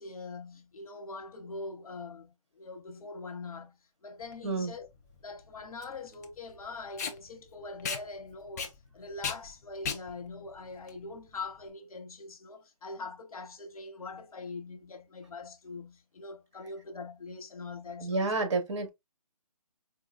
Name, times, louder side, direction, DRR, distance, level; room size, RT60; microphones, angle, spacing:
voice 1, 0.0-4.9 5.2-18.3, left 3 dB, 70° left, 1.0 m, -43 dB
Packing tape duct tape, 4.2-11.7, left 6 dB, 30° left, 0.5 m, -39 dB
voice 2, 18.0-18.9, right 3 dB, 50° right, 1.1 m, -29 dB
4.6 x 2.2 x 2.4 m
hypercardioid pair, 155°, 19 cm